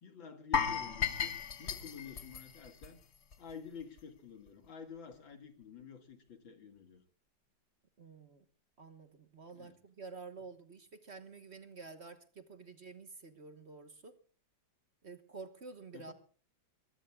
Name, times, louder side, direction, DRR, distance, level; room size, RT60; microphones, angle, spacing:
voice 1, 0.0-3.0 3.4-7.0 9.5-9.8 15.9-16.1, left 6 dB, 90° left, 7 dB, 2.9 m, -50 dB
sound 1, 0.5-3.5 3.8-4.0 4.5-4.6, left 7 dB, 45° left, 1.1 m, -35 dB
voice 2, 8.0-8.4 8.8-14.2 15.0-16.1, right 4 dB, 40° right, 9 dB, 1.4 m, -50 dB
23.0 x 21.0 x 2.4 m, 0.41 s
omnidirectional pair, 2.0 m